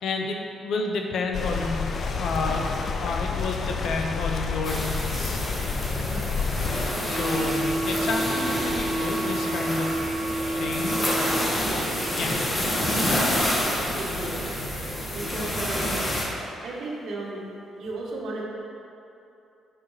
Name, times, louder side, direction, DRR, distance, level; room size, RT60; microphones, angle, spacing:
voice 1, 0.0-1.9 2.1-2.7 3.0-5.4 7.0-9.9 10.6-11.0 12.2-12.3, left 3 dB, 70° left, 2 dB, 0.9 m, -30 dB
sound 1, 1.3-6.9, left 5 dB, 50° left, 0.6 m, -29 dB
sound 2, 4.6-16.2, left 1 dB, 25° left, 1.9 m, -28 dB
voice 2, 5.3-7.2 11.6-12.7 13.7-14.5 15.1-16.1 16.6-17.5 17.8-18.4, right 2 dB, 65° right, -4 dB, 1.7 m, -37 dB
sound 3, 7.0-11.9, right 1 dB, 5° right, 1.2 m, -30 dB
7.5 x 5.6 x 5.0 m, 2.7 s
cardioid pair, 90°, 0 cm